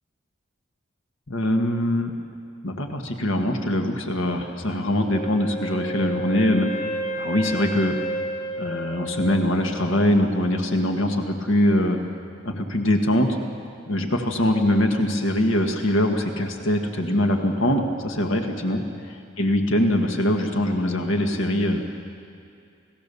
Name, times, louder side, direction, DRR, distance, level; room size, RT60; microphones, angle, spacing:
voice 1, 1.3-2.1 2.6-8.0 8.6-12.0 12.4-13.4 13.9-18.8 19.4-22.0, left 1 dB, 80° left, 3 dB, 1.7 m, -23 dB
Wind instrument woodwind instrument, 5.1-10.0, right 1 dB, 40° left, 4.1 m, -31 dB
30.0 x 17.5 x 7.0 m, 2.4 s
head